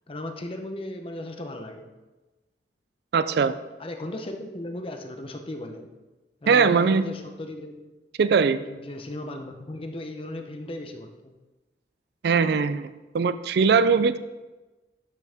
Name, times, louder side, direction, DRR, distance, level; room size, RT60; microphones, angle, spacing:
voice 1, 0.1-1.9 3.8-5.9 6.4-7.8 8.6-11.3, left 1 dB, 30° left, 5 dB, 0.8 m, -36 dB
voice 2, 3.1-3.6 6.5-7.1 8.2-8.6 12.2-14.2, right 5 dB, 65° right, 14 dB, 0.4 m, -21 dB
11.5 x 6.1 x 3.5 m, 1.1 s
head